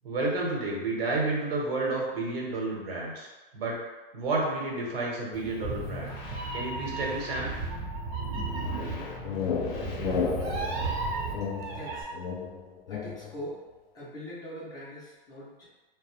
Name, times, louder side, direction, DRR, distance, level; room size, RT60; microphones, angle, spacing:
voice 1, 0.0-3.3 3.5-3.8 4.1-6.1 6.5-7.5, right 2 dB, 75° right, -3 dB, 0.9 m, -30 dB
Meow, 5.3-12.0, right 3 dB, 55° right, 0.6 m, -35 dB
sound 1, 5.6-11.0, left 4 dB, 45° left, 0.6 m, -42 dB
sound 2, 8.8-13.4, left 6 dB, 90° left, 0.4 m, -33 dB
voice 2, 11.7-12.1 12.9-13.6 13.9-15.7, equal, 15° left, -8 dB, 0.3 m, -41 dB
2.3 x 2.0 x 2.9 m, 1.2 s
hypercardioid pair, 135°, 29 cm